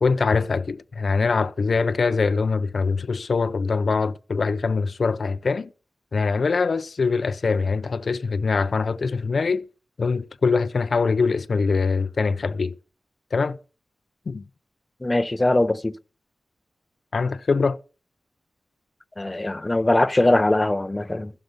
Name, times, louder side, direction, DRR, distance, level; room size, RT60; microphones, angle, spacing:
voice 1, 0.0-5.7 6.1-9.6 10.0-12.8 13.3-13.6 14.3-14.4 17.1-17.8, left 4 dB, 60° left, 0.6 m, -23 dB
voice 2, 15.0-15.9 19.2-21.3, left 2 dB, 20° left, 0.8 m, -21 dB
15.5 x 6.6 x 6.9 m
wide cardioid pair, 95°, 0 cm